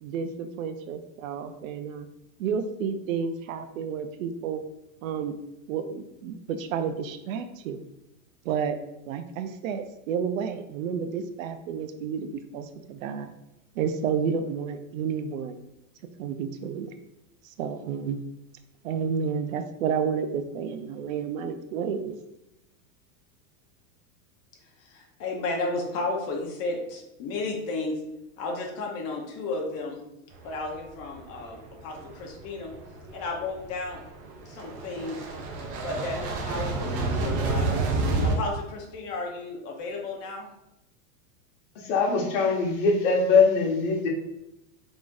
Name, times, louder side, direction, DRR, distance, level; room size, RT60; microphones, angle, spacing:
voice 1, 0.0-2.1 2.4-4.6 5.0-5.3 5.7-7.8 8.4-8.8 9.1-13.3 13.7-15.6 16.2-16.9 17.4-18.2 18.8-22.2, right 6 dB, 65° right, 8 dB, 0.6 m, -31 dB
voice 2, 24.8-28.0 28.4-30.0 30.4-32.7 33.1-34.0 34.4-35.2 35.8-37.7 38.2-40.5, left 3 dB, 35° left, 0 dB, 1.0 m, -33 dB
sound 1, 30.5-30.6 31.0-31.3 31.7-38.4, right 3 dB, 20° right, 0.4 m, -29 dB
voice 3, 41.7-44.1, left 4 dB, 55° left, 0 dB, 1.4 m, -22 dB
4.8 x 3.6 x 2.6 m, 0.88 s
supercardioid pair, 150°, 43 cm